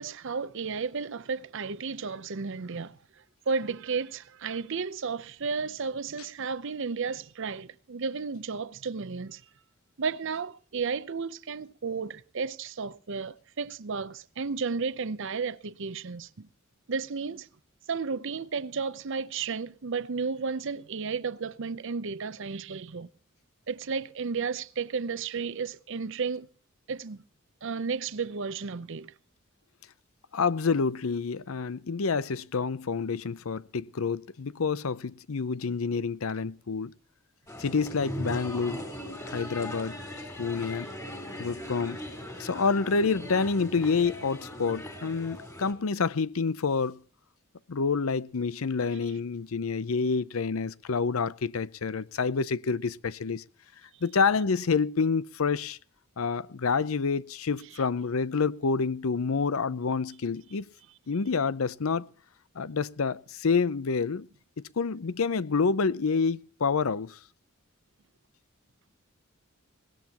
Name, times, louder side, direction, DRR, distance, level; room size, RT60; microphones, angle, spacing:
voice 1, 0.0-3.0 3.5-9.4 10.0-16.5 16.9-17.5 17.9-23.1 23.7-26.5 26.9-27.2 27.6-29.1, right 5 dB, 60° right, 0.7 m, -33 dB
voice 2, 30.3-36.9 37.6-40.0 40.4-40.9 41.4-42.0 42.4-47.0 47.7-53.4 54.0-55.8 56.2-60.7 61.1-62.0 62.6-64.3 64.6-67.2, left 5 dB, 80° left, 0.6 m, -28 dB
sound 1, 37.5-45.7, left 1 dB, 15° left, 4.1 m, -39 dB
21.0 x 18.5 x 3.0 m
head